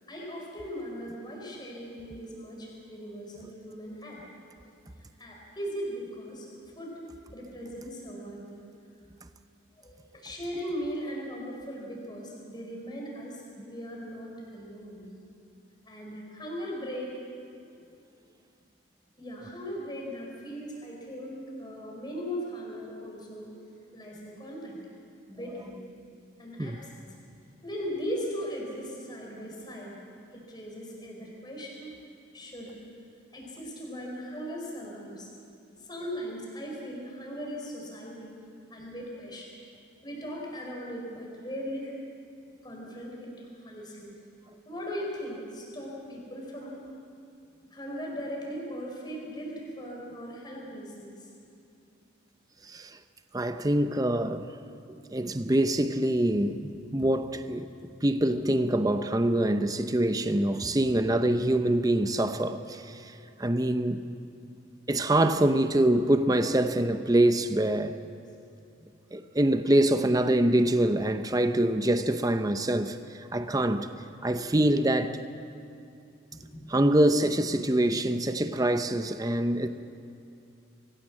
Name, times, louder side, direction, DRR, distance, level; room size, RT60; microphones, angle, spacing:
voice 1, 0.1-4.2 5.2-6.5 6.7-7.0 7.3-8.6 9.8-15.1 15.9-17.1 19.2-23.5 23.9-24.8 25.3-25.8 26.4-27.0 27.6-30.0 30.3-31.9 32.3-32.7 33.3-35.3 35.8-38.3 38.7-39.5 40.0-41.9 42.6-44.1 44.7-46.8 47.7-51.1 60.6-60.7 76.3-76.7, equal, 20° left, 4.7 m, -38 dB
voice 2, 52.7-53.0 53.3-54.5 54.9-63.1 63.4-64.0 64.9-68.0 69.1-73.9 74.2-75.2 76.7-79.7, right 1 dB, 20° right, 0.7 m, -25 dB
24.0 x 15.5 x 7.4 m
head